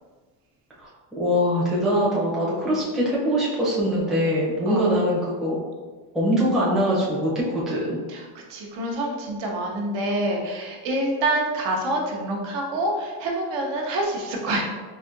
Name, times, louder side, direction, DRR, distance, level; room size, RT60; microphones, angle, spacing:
voice 1, 1.2-5.6 6.1-7.3 7.7-8.0, equal, ahead, -7 dB, 0.5 m, -22 dB
voice 2, 8.1-14.6, right 1 dB, 65° right, 0 dB, 0.8 m, -27 dB
4.1 x 2.6 x 2.5 m, 1.4 s
cardioid pair, 145°, 48 cm